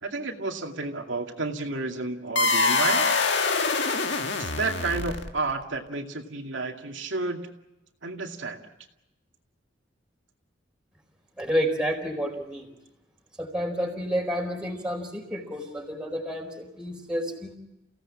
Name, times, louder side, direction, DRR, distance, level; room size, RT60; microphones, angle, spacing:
voice 1, 0.0-3.1 4.4-7.4 8.0-8.6, right 3 dB, 85° right, 1 dB, 2.3 m, -31 dB
sound 1, 2.4-5.5, left 3 dB, 65° left, 1.8 m, -24 dB
voice 2, 11.4-12.7 13.4-17.5, equal, 5° right, 0 dB, 4.5 m, -30 dB
29.0 x 17.0 x 8.7 m, 0.93 s
head